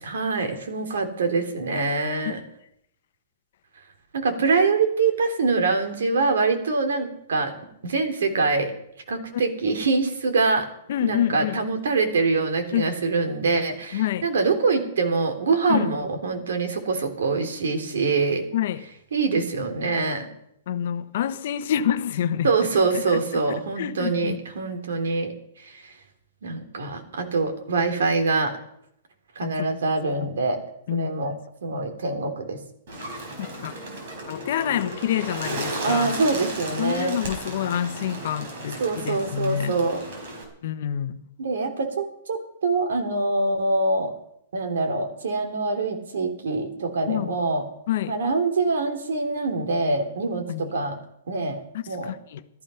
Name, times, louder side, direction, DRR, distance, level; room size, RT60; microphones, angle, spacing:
voice 1, 0.0-2.4 4.1-7.6 7.8-8.7 9.1-10.7 11.0-18.5 19.1-20.3 22.4-25.3 25.6-25.7 26.4-28.6 29.4-30.6 30.9-31.3 31.6-32.6 35.8-37.2 38.8-40.0 41.4-44.1 44.5-47.6 48.1-51.0 51.3-51.6 51.9-52.1, right 3 dB, 85° right, 3.4 m, -24 dB
voice 2, 10.9-11.6 12.7-12.9 13.9-14.3 15.7-15.9 18.5-18.8 20.7-22.5 22.9-23.4 23.8-24.4 29.4-29.7 30.2-30.3 30.9-31.2 31.8-31.9 33.4-33.7 34.3-36.2 36.8-39.7 40.6-41.2 47.1-47.3 47.9-48.2 50.5-50.7 51.7-52.4, left 10 dB, 45° left, 0.9 m, -27 dB
Bird, 32.9-40.4, right 1 dB, 45° right, 4.8 m, -34 dB
15.5 x 13.5 x 5.8 m
hypercardioid pair, 180°, 0 cm